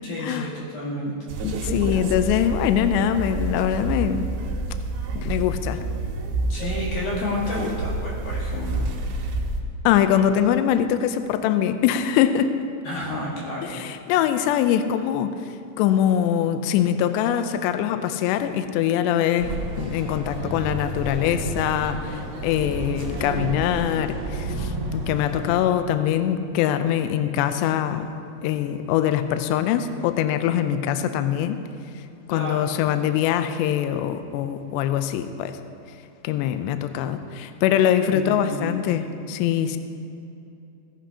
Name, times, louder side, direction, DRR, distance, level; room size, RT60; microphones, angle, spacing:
voice 1, 0.0-1.2 6.5-8.9 12.8-13.8 32.3-32.7 38.1-38.7, left 1 dB, 60° left, -4 dB, 3.1 m, -30 dB
sound 1, 1.3-9.6, right 2 dB, 75° right, 3.2 m, -28 dB
voice 2, 1.4-4.3 5.2-5.8 9.8-12.5 13.6-15.4 15.8-28.1 28.4-31.6 32.3-35.6 36.2-39.8, left 10 dB, 90° left, 9 dB, 2.5 m, -23 dB
sound 2, 19.4-25.5, right 2 dB, 55° right, 1.8 m, -31 dB
17.5 x 15.0 x 2.8 m, 2.6 s
omnidirectional pair, 5.6 m